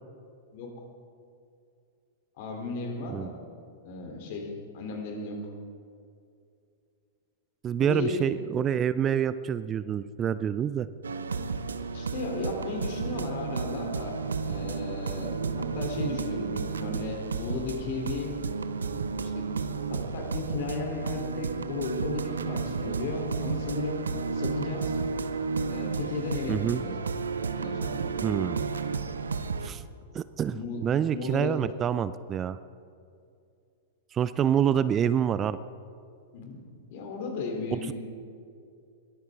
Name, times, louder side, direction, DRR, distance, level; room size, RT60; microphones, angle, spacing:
voice 1, 2.4-3.4 3.8-5.4 7.8-8.2 11.9-14.1 14.4-18.3 19.3-19.5 19.9-24.1 24.3-25.0 25.7-26.9 27.5-28.1 30.4-31.6 34.6-34.8 36.3-36.6 36.9-37.9, left 3 dB, 50° left, 2 dB, 3.4 m, -35 dB
voice 2, 7.6-10.9 26.5-26.8 28.2-28.7 29.6-29.8 30.1-30.6 30.8-32.6 34.1-35.6 37.7-37.9, right 9 dB, 25° right, 15 dB, 0.4 m, -27 dB
sound 1, 11.0-29.7, right 5 dB, 75° right, 0.8 m, -32 dB
21.5 x 14.0 x 3.7 m, 2.4 s
figure-of-eight pair, 100°, 0 cm